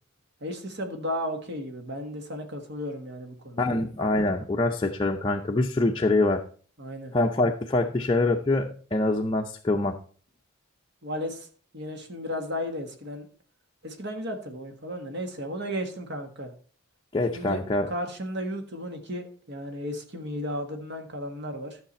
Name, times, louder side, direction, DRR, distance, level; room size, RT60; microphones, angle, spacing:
voice 1, 0.4-3.7 6.8-7.1 11.0-11.5 11.7-13.3 13.8-16.5 17.3-21.8, equal, 50° right, 5 dB, 1.5 m, -34 dB
voice 2, 3.6-6.4 7.1-10.0 17.1-17.9, left 2 dB, 20° left, 1 dB, 0.6 m, -25 dB
11.5 x 6.6 x 4.2 m, 0.43 s
head